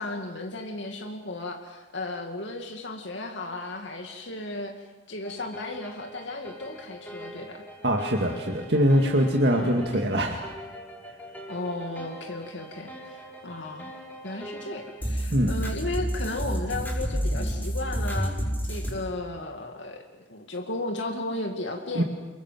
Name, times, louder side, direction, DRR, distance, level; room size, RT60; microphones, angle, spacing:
voice 1, 0.0-7.6 9.6-9.8 11.5-13.9 14.2-18.3 18.6-22.0, left 2 dB, 65° left, 2 dB, 2.4 m, -35 dB
sound 1, 5.2-18.9, equal, 10° left, 6.0 m, -34 dB
voice 2, 7.8-10.4 15.3-15.5 22.0-22.1, equal, 55° right, 1 dB, 2.3 m, -23 dB
29.5 x 22.5 x 7.6 m, 1.2 s
head